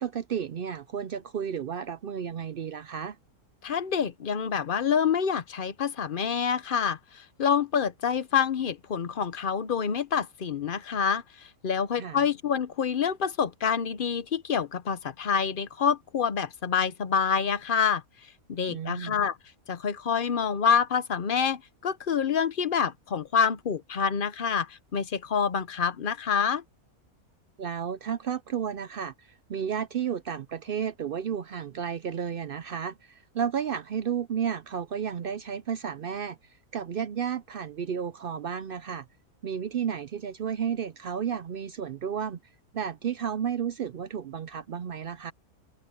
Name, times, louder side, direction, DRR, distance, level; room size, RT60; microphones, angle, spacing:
voice 1, 0.0-3.2 12.0-12.2 18.7-19.2 27.6-36.4 36.7-39.1 39.4-42.4 42.7-45.3, right 8 dB, 70° right, 0.5 m, -32 dB
voice 2, 3.6-18.0 18.5-19.4 19.7-26.6, left 7 dB, 45° left, 0.7 m, -27 dB
open air
omnidirectional pair, 1.6 m